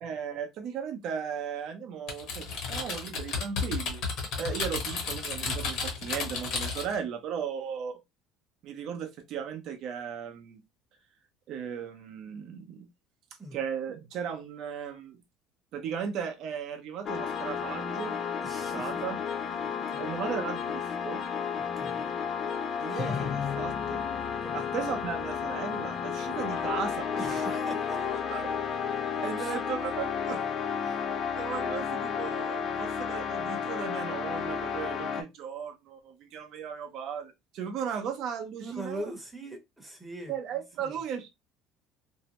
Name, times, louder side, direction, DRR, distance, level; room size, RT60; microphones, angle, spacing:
voice 1, 0.0-4.0 4.3-8.0 8.6-10.6 11.5-12.9 13.5-15.2 15.7-18.2 18.5-19.2 20.0-21.2 22.8-24.0 24.5-27.4 28.3-28.4 29.2-30.4 30.8-30.9 31.3-39.1 40.3-41.3, right 7 dB, 50° right, 0.6 m, -36 dB
Typing, 2.1-7.0, left 4 dB, 55° left, 0.9 m, -33 dB
sound 1, 17.1-35.2, left 7 dB, 35° left, 0.4 m, -32 dB
voice 2, 18.4-18.9 19.5-20.2 21.6-22.1 24.4-24.6 27.2-28.2 29.4-29.5 38.6-40.4 40.8-41.0, right 1 dB, 5° right, 0.8 m, -42 dB
2.6 x 2.1 x 2.9 m
cardioid pair, 155°, 0 cm